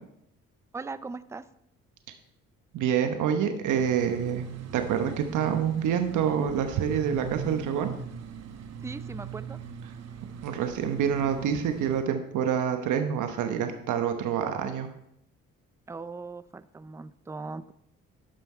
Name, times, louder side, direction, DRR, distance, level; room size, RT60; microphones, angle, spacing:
voice 1, 0.7-1.4 8.8-9.6 15.9-17.7, right 4 dB, 10° right, 15 dB, 0.4 m, -39 dB
voice 2, 2.7-4.4 4.7-7.9 10.4-14.9, right 8 dB, 85° right, 7 dB, 1.1 m, -27 dB
sound 1, 3.7-12.0, right 6 dB, 60° right, 1.0 m, -40 dB
12.0 x 5.8 x 4.4 m, 0.75 s
cardioid pair, 90°, 30 cm